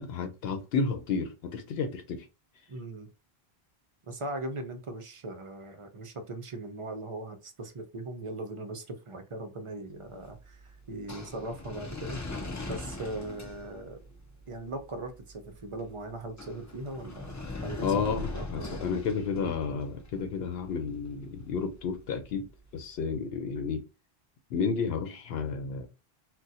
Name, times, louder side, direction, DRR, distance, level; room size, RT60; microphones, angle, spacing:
voice 1, 0.0-2.2 17.8-22.5 22.7-23.8 24.5-25.9, left 5 dB, 80° left, 0.8 m, -31 dB
voice 2, 2.7-3.1 4.1-14.0 14.5-18.9 19.4-19.5, right 2 dB, 40° right, 0.5 m, -39 dB
sound 1, 10.0-23.1, left 2 dB, 25° left, 0.4 m, -42 dB
2.5 x 2.2 x 4.0 m
omnidirectional pair, 1.0 m